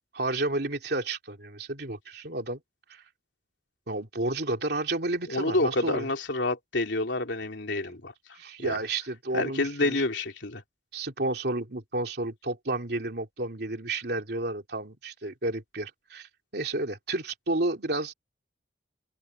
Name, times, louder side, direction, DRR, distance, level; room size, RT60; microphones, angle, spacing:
voice 1, 0.1-2.6 2.9-3.0 3.9-6.1 8.3-10.0 10.9-18.1, right 2 dB, 60° right, 3.0 m, -31 dB
voice 2, 5.3-8.4 8.6-8.8 9.3-10.6, left 2 dB, 90° left, 3.1 m, -28 dB
open air
head